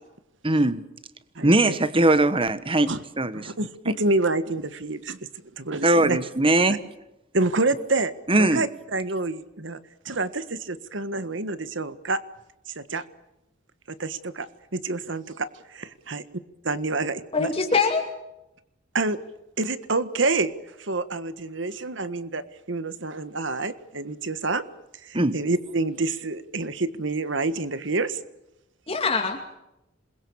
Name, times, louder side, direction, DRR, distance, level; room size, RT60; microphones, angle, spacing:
voice 1, 0.4-0.8 1.4-3.5 5.8-6.8 8.3-8.6 25.1-25.4, right 2 dB, 30° right, 13 dB, 1.4 m, -20 dB
voice 2, 1.3-1.8 2.9-3.0 3.3-5.2 5.6-6.2 6.7-6.8 7.3-8.1 8.4-9.8 10.0-12.2 12.7-13.0 13.9-14.5 14.7-16.2 16.7-17.5 18.9-19.2 19.6-20.5 20.8-24.6 25.0-28.2, right 3 dB, 65° right, 13 dB, 1.5 m, -27 dB
voice 3, 17.3-18.0 28.9-29.5, left 4 dB, 30° left, 3 dB, 2.5 m, -23 dB
27.5 x 22.0 x 7.1 m, 0.89 s
head